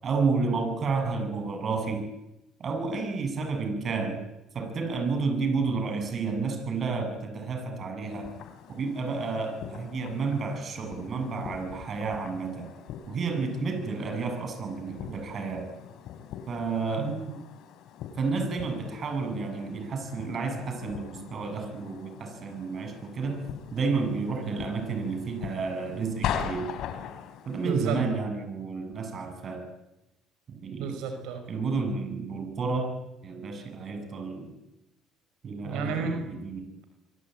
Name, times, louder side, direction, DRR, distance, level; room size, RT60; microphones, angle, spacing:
voice 1, 0.0-2.1 2.6-4.2 4.5-8.3 8.7-12.7 13.1-15.7 16.5-17.1 18.2-23.4 23.7-26.7 27.5-29.6 30.5-30.9 31.5-33.0 33.2-34.5 35.4-36.6, right 4 dB, 40° right, 6 dB, 7.6 m, -31 dB
sound 1, 8.1-27.8, left 9 dB, 70° left, 3.9 m, -41 dB
voice 2, 17.0-17.4 27.6-28.1 30.8-31.4 35.6-36.2, right 5 dB, 85° right, 6 dB, 5.4 m, -32 dB
26.0 x 24.0 x 9.3 m, 0.95 s
cardioid pair, 105°, 0 cm